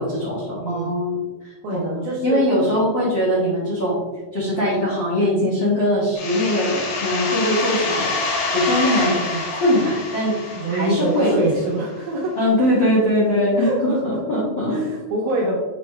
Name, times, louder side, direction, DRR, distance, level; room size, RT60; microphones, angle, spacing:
voice 1, 0.0-4.0 4.3-9.2 9.5-10.4 10.7-11.5 12.3-14.8, left 1 dB, 85° left, -7 dB, 1.0 m, -21 dB
voice 2, 0.5-0.9 1.6-2.5 3.2-3.6 9.0-9.4 10.6-12.4 13.6-14.4 14.7-15.6, right 1 dB, 75° right, -2 dB, 2.2 m, -26 dB
sound 1, 6.2-11.6, left 3 dB, 70° left, 3.7 m, -26 dB
8.3 x 3.7 x 3.2 m, 1.2 s
omnidirectional pair, 5.1 m